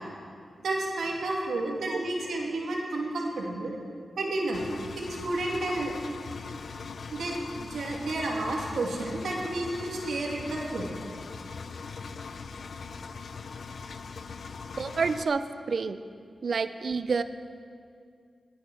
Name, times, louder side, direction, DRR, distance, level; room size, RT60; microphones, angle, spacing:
voice 1, 0.6-3.7 4.2-4.6 5.1-5.9 7.1-11.0, right 2 dB, 85° right, -1 dB, 2.7 m, -31 dB
Engine, 4.5-15.2, left 5 dB, 70° left, 0.6 m, -41 dB
voice 2, 14.8-16.0 16.4-17.2, right 4 dB, 65° right, 12 dB, 0.6 m, -28 dB
20.0 x 8.7 x 6.3 m, 2.3 s
wide cardioid pair, 85°, 0 cm